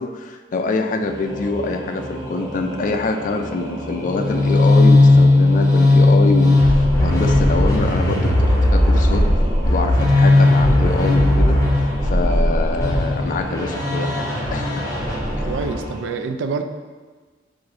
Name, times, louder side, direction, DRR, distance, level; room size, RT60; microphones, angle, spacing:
voice 1, 0.0-9.3 9.7-14.9 15.4-15.5, left 3 dB, 45° left, 6 dB, 0.3 m, -25 dB
Singing / Musical instrument, 1.0-16.0, right 1 dB, 20° right, 0.9 m, -33 dB
sound 1, 4.0-15.9, left 2 dB, 15° left, 0.7 m, -16 dB
voice 2, 15.4-16.6, right 4 dB, 80° right, 7 dB, 0.3 m, -26 dB
4.7 x 2.5 x 3.7 m, 1.4 s
head